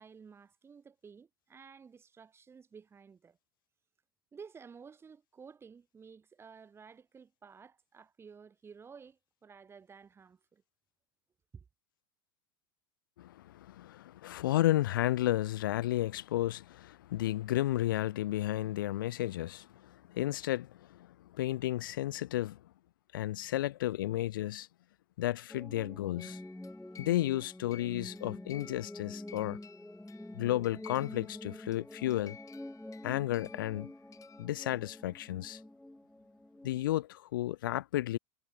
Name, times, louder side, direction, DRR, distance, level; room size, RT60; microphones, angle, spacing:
voice 1, 0.0-3.4 4.3-10.6 11.5-11.6, right 6 dB, 20° right, 2.8 m, -53 dB
voice 2, 13.2-22.6 23.1-24.7 25.2-26.4 27.0-29.6 30.3-32.4 33.0-33.9 34.4-35.6 36.6-38.2, left 14 dB, 75° left, 0.4 m, -33 dB
sound 1, 25.5-36.8, left 1 dB, 5° left, 0.7 m, -47 dB
sound 2, 26.2-34.5, left 8 dB, 30° left, 6.1 m, -56 dB
hypercardioid pair, 90°, 11 cm